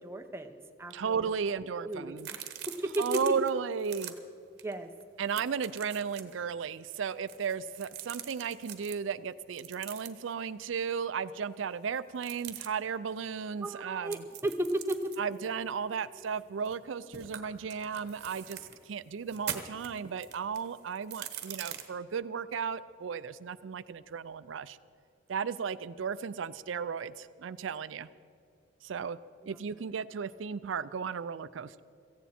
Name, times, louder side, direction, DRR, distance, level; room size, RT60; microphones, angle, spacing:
voice 1, 0.0-1.4 1.8-2.4 2.7-3.1 4.6-4.9 13.6-15.1 29.4-29.6, right 1 dB, 15° right, 6 dB, 0.7 m, -35 dB
voice 2, 0.9-2.3 3.0-4.1 5.2-14.2 15.2-24.8 25.3-28.1 28.8-31.8, right 6 dB, 90° right, 16 dB, 0.4 m, -35 dB
sound 1, 2.2-3.5 3.8-4.1 4.6-4.7 5.0-6.3 7.1-9.0 9.5-10.3 12.1-12.7 14.1-16.8 17.1-18.8 19.2-21.8, right 10 dB, 55° right, 1.1 m, -43 dB
17.0 x 15.0 x 4.3 m, 2.4 s
head